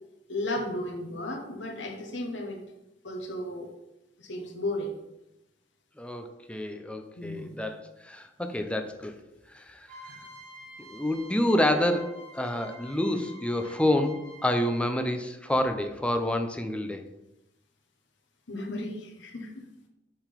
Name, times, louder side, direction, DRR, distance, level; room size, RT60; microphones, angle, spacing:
voice 1, 0.3-2.6 3.0-3.7 4.2-4.9 7.2-7.6 18.5-19.6, left 1 dB, 85° left, 3 dB, 1.3 m, -34 dB
voice 2, 6.0-9.1 9.5-9.9 10.8-17.0, left 1 dB, 5° left, 7 dB, 0.6 m, -28 dB
sound 1, 9.9-15.1, equal, 45° right, 1.9 m, -49 dB
7.3 x 3.9 x 5.1 m, 0.93 s
head